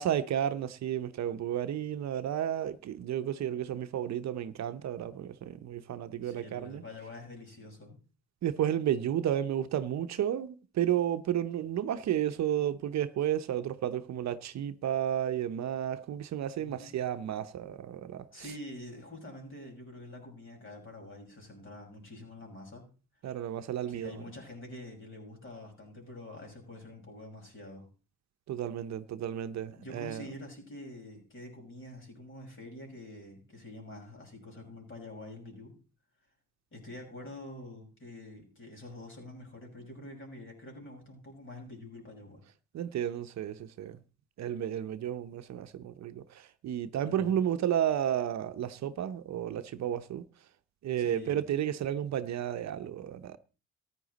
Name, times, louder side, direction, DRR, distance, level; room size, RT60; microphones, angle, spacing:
voice 1, 0.0-6.8 8.4-18.5 23.2-24.3 28.5-30.3 42.7-44.0 44.4-50.2 50.8-53.4, right 10 dB, 65° right, 0.8 m, -32 dB
voice 2, 6.2-8.0 16.6-16.9 18.3-22.9 23.9-27.9 29.8-35.7 36.7-42.4 47.0-47.4 51.0-51.4, left 1 dB, 40° left, 5.8 m, -46 dB
14.0 x 9.8 x 4.1 m
cardioid pair, 90°, 30 cm